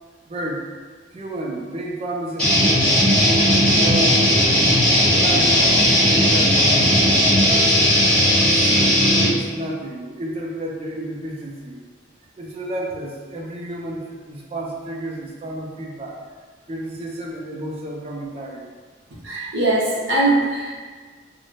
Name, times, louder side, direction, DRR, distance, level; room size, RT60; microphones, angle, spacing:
voice 1, 0.3-0.7 1.1-2.9 3.2-4.5 5.2-7.0 7.5-8.0 8.5-11.8 12.4-16.2 16.7-18.6, right 1 dB, 30° right, -1 dB, 0.4 m, -31 dB
sound 1, 2.4-9.3, equal, 5° left, 1.1 m, -16 dB
voice 2, 19.2-20.8, right 2 dB, 80° right, -5 dB, 0.7 m, -21 dB
3.9 x 2.1 x 3.2 m, 1.5 s
head